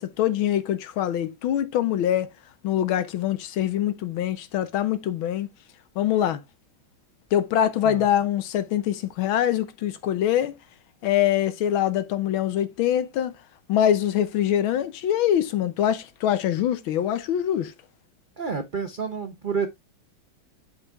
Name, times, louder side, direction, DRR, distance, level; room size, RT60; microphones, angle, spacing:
voice 1, 0.0-2.3 2.6-5.5 6.0-6.4 7.3-10.5 11.0-13.3 13.7-17.7, left 11 dB, 80° left, 1.7 m, -24 dB
voice 2, 18.4-19.7, right 5 dB, 85° right, 0.4 m, -29 dB
8.2 x 5.1 x 3.5 m
omnidirectional pair, 2.2 m